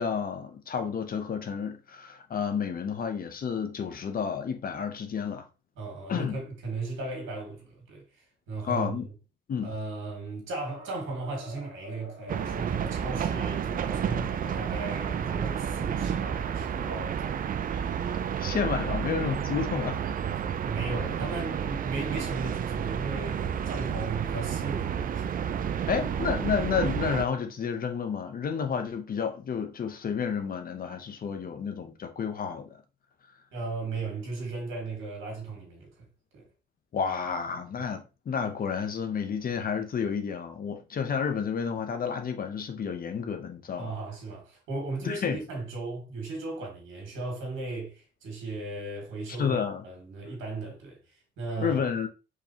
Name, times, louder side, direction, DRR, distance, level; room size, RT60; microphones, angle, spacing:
voice 1, 0.0-5.5 6.1-6.4 8.6-9.1 9.5-9.7 17.7-17.9 18.4-20.0 25.9-32.8 36.9-43.9 45.0-45.4 49.4-49.8 51.6-52.1, left 6 dB, 45° left, 0.7 m, -30 dB
voice 2, 5.8-9.0 9.6-17.6 20.6-25.4 25.9-26.0 33.5-36.1 36.3-36.5 43.8-49.6 49.8-51.8, right 3 dB, 85° right, 1.9 m, -36 dB
sound 1, 10.6-16.5, equal, 70° right, 1.6 m, -46 dB
sound 2, 12.3-27.2, right 8 dB, 45° right, 0.4 m, -31 dB
4.7 x 3.1 x 2.8 m
cardioid pair, 90°, 20 cm